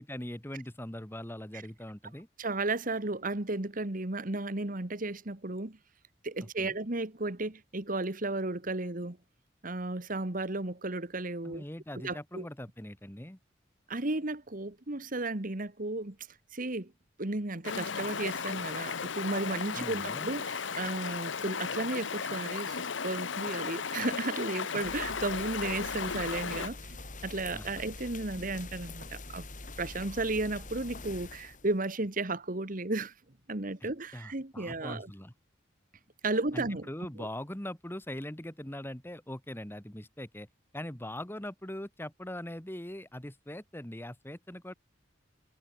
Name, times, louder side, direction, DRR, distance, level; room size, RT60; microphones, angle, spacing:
voice 1, 0.0-2.3 6.6-6.8 11.4-13.4 19.7-20.3 27.5-27.9 34.1-35.3 36.5-40.5 40.7-44.7, left 1 dB, 10° left, 1.6 m, -41 dB
voice 2, 2.4-5.8 6.2-9.2 9.6-11.6 11.9-12.4 13.9-16.2 16.5-16.9 17.2-22.8 23.0-27.0 27.2-29.4 29.8-33.1 33.5-35.1 36.2-36.9 37.2-37.3, right 2 dB, 45° right, 1.7 m, -34 dB
Stream, 17.6-26.7, left 6 dB, 75° left, 1.0 m, -35 dB
sound 1, 24.8-31.8, left 2 dB, 45° left, 5.1 m, -45 dB
head